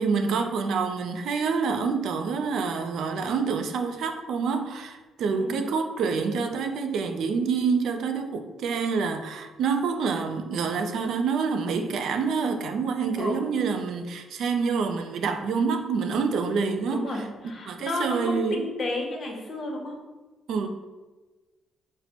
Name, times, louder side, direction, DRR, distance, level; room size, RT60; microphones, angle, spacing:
voice 1, 0.0-17.1 17.7-18.7 20.5-20.7, right 5 dB, 70° right, 6 dB, 0.4 m, -27 dB
voice 2, 16.9-19.9, left 2 dB, 45° left, 0 dB, 0.9 m, -32 dB
4.1 x 2.0 x 4.3 m, 1.2 s
cardioid pair, 90°, 0 cm